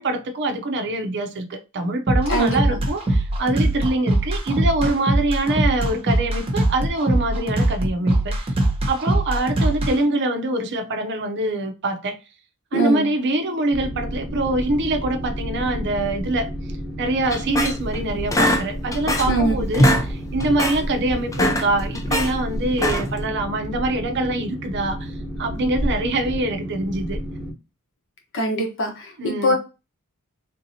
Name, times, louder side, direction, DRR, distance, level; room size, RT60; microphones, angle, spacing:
voice 1, 0.0-8.5 8.9-12.2 12.7-16.5 17.0-25.1 25.4-27.2 29.2-29.5, right 2 dB, 55° right, 0.6 m, -24 dB
sound 1, 2.1-9.9, right 1 dB, 25° right, 0.9 m, -21 dB
voice 2, 2.3-2.8 12.7-13.1 19.3-19.7 28.3-29.5, right 1 dB, 60° left, 1.1 m, -22 dB
Boat Water vehicle, 13.7-27.5, equal, ahead, 1.1 m, -30 dB
squeaky desk chair, 17.3-18.0 18.3-19.4 19.7-20.1 20.4-20.8 21.2-22.3 22.7-23.2, equal, 15° left, 0.5 m, -21 dB
3.6 x 2.7 x 2.7 m
head